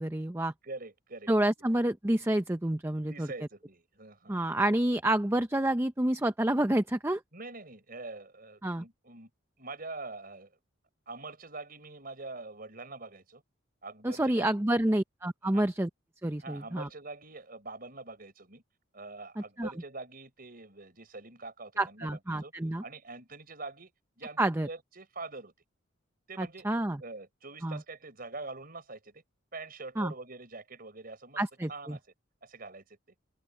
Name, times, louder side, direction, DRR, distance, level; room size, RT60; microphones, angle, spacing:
voice 1, 0.0-0.5 1.3-3.3 4.3-7.2 8.6-8.8 14.0-15.9 16.2-16.9 19.6-19.7 21.8-22.8 24.4-24.7 26.4-27.0 27.6-27.8 30.0-30.1 31.4-32.0, right 1 dB, 15° right, 0.6 m, -28 dB
voice 2, 0.6-1.3 2.9-4.4 7.3-9.3 9.6-10.6 11.1-13.4 13.8-14.6 15.4-15.7 16.4-18.6 18.9-22.5 22.8-23.9 24.2-25.5 26.3-26.7 27.0-29.2 29.5-31.4 31.7-32.0 32.4-33.0, right 3 dB, 50° right, 5.3 m, -44 dB
head